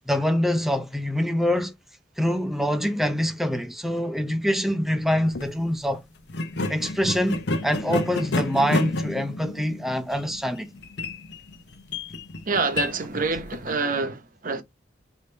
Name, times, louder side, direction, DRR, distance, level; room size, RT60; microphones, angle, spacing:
voice 1, 0.1-1.7 2.2-6.0 6.7-10.7, equal, ahead, 0.6 m, -25 dB
sound 1, 5.2-5.5 6.3-13.8, left 2 dB, 65° left, 0.8 m, -30 dB
voice 2, 12.5-14.6, right 4 dB, 50° right, 0.8 m, -26 dB
5.0 x 2.7 x 3.3 m
head